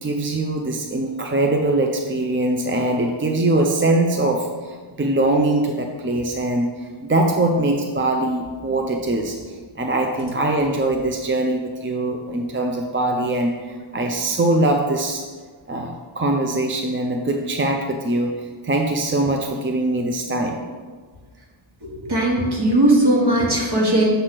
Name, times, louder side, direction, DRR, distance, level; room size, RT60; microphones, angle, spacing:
voice 1, 0.0-15.3 15.7-20.6, right 2 dB, 25° right, 3 dB, 0.4 m, -22 dB
voice 2, 21.8-24.1, right 1 dB, 50° right, -2 dB, 1.5 m, -18 dB
6.6 x 3.1 x 5.9 m, 1.5 s
wide cardioid pair, 80°, 49 cm